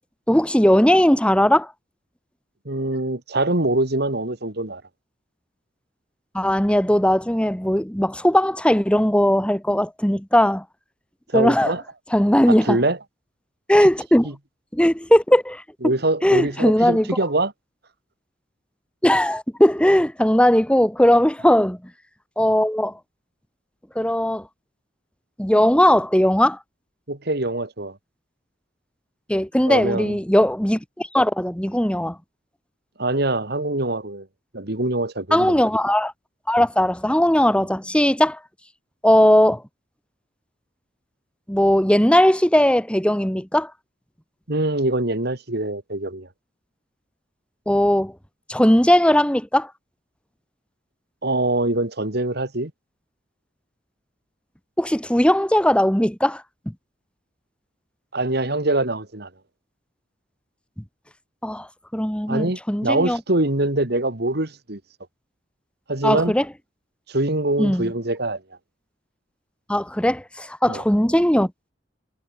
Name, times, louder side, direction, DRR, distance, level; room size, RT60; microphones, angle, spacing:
voice 1, 0.3-1.7 6.3-10.6 11.3-11.7 12.1-12.8 13.7-14.3 14.7-15.9 16.2-17.1 19.0-21.8 22.4-22.9 24.0-24.5 25.4-26.6 29.3-32.2 35.3-36.1 36.5-38.4 39.0-39.6 41.5-43.7 47.7-48.1 48.5-49.7 54.8-56.7 61.4-61.7 61.9-63.2 66.0-66.4 67.6-67.9 69.7-71.5, equal, 5° left, 2.0 m, -18 dB
voice 2, 2.6-4.8 11.3-11.8 12.5-13.0 14.2-14.3 15.8-17.5 27.1-28.0 29.6-30.2 33.0-34.3 34.5-35.6 44.5-46.3 51.2-52.7 58.1-59.3 62.3-64.8 65.9-66.3 67.1-68.4 70.7-70.8, right 2 dB, 60° right, 3.0 m, -24 dB
head